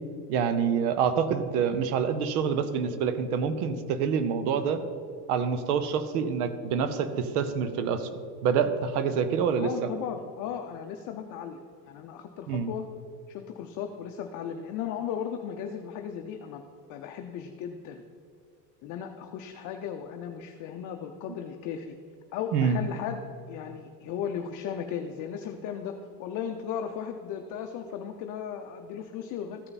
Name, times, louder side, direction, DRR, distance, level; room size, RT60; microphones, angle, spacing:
voice 1, 0.3-4.8 5.3-8.1 8.4-9.7 12.5-12.7 22.5-22.8, right 6 dB, 80° right, 11 dB, 0.9 m, -26 dB
voice 2, 9.5-12.9 13.3-16.6 16.9-18.0 18.8-22.0 22.3-25.9 26.2-29.6, left 8 dB, 45° left, 4 dB, 0.6 m, -36 dB
14.0 x 5.5 x 4.1 m, 2.3 s
supercardioid pair, 125°, 44 cm